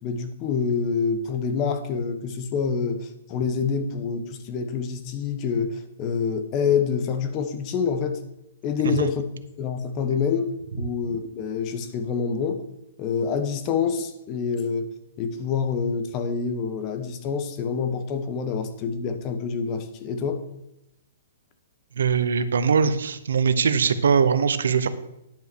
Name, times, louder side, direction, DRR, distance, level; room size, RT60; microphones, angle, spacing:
voice 1, 0.0-8.2 8.6-9.2 9.6-12.6 13.0-14.9 15.2-20.4, left 6 dB, 30° left, 8 dB, 1.1 m, -27 dB
voice 2, 22.0-24.9, right 6 dB, 85° right, 12 dB, 0.9 m, -21 dB
10.5 x 5.7 x 6.1 m, 0.86 s
hypercardioid pair, 150°, 0 cm